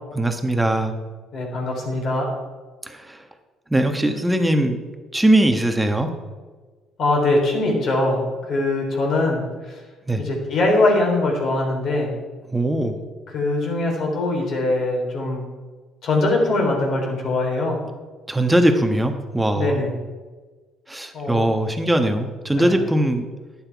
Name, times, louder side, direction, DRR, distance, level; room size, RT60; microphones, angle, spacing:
voice 1, 0.1-1.0 2.8-3.2 3.7-4.8 5.1-6.1 10.1-10.2 12.5-12.9 18.3-19.8 20.9-23.3, right 1 dB, 10° right, 6 dB, 1.3 m, -20 dB
voice 2, 1.3-2.3 7.0-9.7 10.2-12.1 13.3-15.4 16.0-17.8 19.6-19.9 21.1-21.5 22.6-22.8, left 2 dB, 55° left, 0 dB, 3.7 m, -22 dB
11.5 x 9.0 x 4.8 m, 1.4 s
cardioid pair, 100°, 0 cm